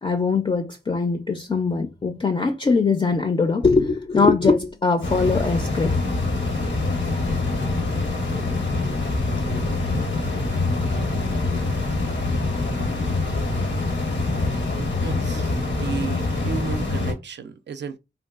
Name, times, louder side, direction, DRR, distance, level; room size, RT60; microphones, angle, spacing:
voice 1, 0.0-6.0, left 4 dB, 30° left, 0.4 m, -21 dB
sound 1, 5.0-17.1, left 3 dB, 85° left, 0.9 m, -24 dB
voice 2, 15.0-18.0, right 5 dB, 75° right, 0.4 m, -33 dB
3.6 x 2.3 x 2.3 m
wide cardioid pair, 75°, 18 cm